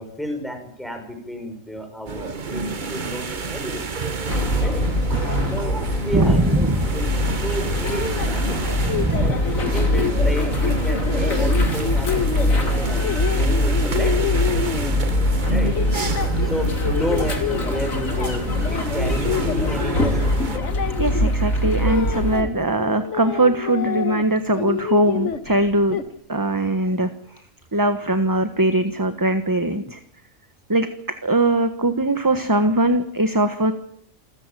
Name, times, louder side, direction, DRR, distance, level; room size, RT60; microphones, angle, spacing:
voice 1, 0.0-3.9 4.6-4.8 5.5-6.7 6.9-7.1 7.4-8.8 9.2-9.4 9.7-14.3 15.5-15.7 16.4-20.3, equal, ahead, 5 dB, 5.9 m, -31 dB
sound 1, 2.1-20.6, right 4 dB, 35° right, 1.2 m, -30 dB
sound 2, 4.3-22.4, left 1 dB, 80° left, 3.6 m, -23 dB
voice 2, 6.1-6.8 8.8-9.4 20.9-26.0 26.3-27.1 27.7-30.0 30.7-33.7, right 1 dB, 15° right, 9 dB, 1.2 m, -21 dB
sound 3, 7.6-15.2 15.6-17.8 18.1-22.5 22.8-24.3 24.5-26.1, left 7 dB, 60° left, 1.7 m, -29 dB
28.0 x 14.5 x 9.2 m, 0.68 s
omnidirectional pair, 1.4 m